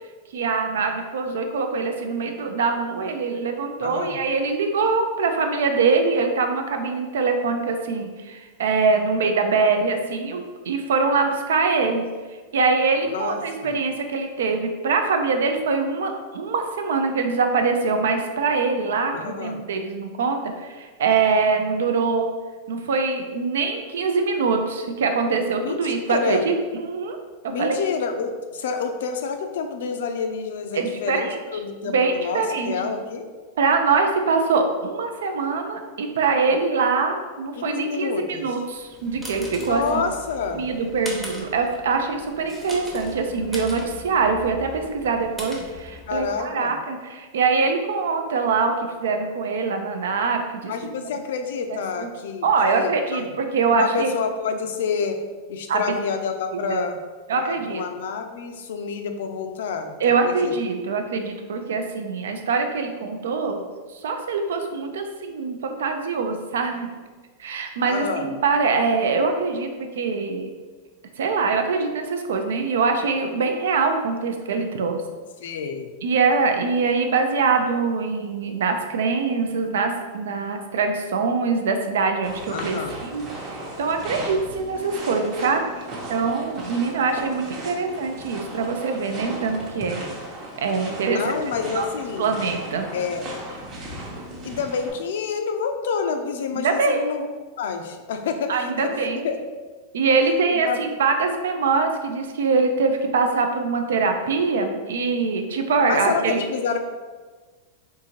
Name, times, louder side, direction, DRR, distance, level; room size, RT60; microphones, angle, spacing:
voice 1, 0.3-12.1 12.5-22.3 22.7-27.2 27.6-27.8 30.7-31.4 31.9-32.7 33.6-40.0 40.5-50.7 51.9-52.1 52.4-54.2 55.7-55.8 56.5-56.8 57.3-57.8 60.0-63.6 63.9-66.9 67.4-70.5 71.2-75.0 76.0-90.0 90.6-91.4 91.7-91.9 92.2-92.9 96.5-97.0 98.5-99.3 99.9-106.4, right 4 dB, 85° right, 5 dB, 0.4 m, -23 dB
voice 2, 3.8-4.2 13.0-13.8 19.1-19.6 25.6-26.4 27.5-33.3 37.6-38.6 39.7-40.7 46.1-46.8 50.7-53.3 53.7-55.2 55.5-57.0 57.4-59.9 60.2-60.5 67.8-68.3 75.4-75.9 82.5-83.0 91.1-92.3 92.9-93.3 94.4-97.3 97.6-99.4 100.7-100.8 105.9-106.8, left 5 dB, 75° left, 6 dB, 0.4 m, -28 dB
sound 1, 38.7-46.5, left 1 dB, ahead, 0.6 m, -40 dB
sound 2, 82.2-94.9, right 1 dB, 35° right, 0.8 m, -37 dB
3.5 x 2.6 x 3.0 m, 1.4 s
supercardioid pair, 140°, 0 cm